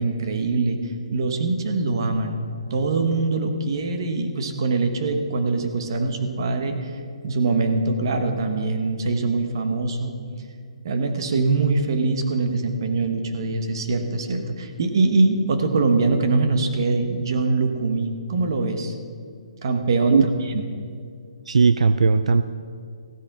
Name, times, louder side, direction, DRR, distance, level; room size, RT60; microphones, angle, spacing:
voice 1, 0.0-2.4 2.7-6.9 7.2-10.2 10.8-18.9 19.6-20.6, right 3 dB, 40° right, 7 dB, 1.2 m, -23 dB
voice 2, 21.5-22.4, right 4 dB, 75° right, 12 dB, 0.4 m, -17 dB
15.5 x 8.6 x 6.0 m, 2.3 s
hypercardioid pair, 175°, 3 cm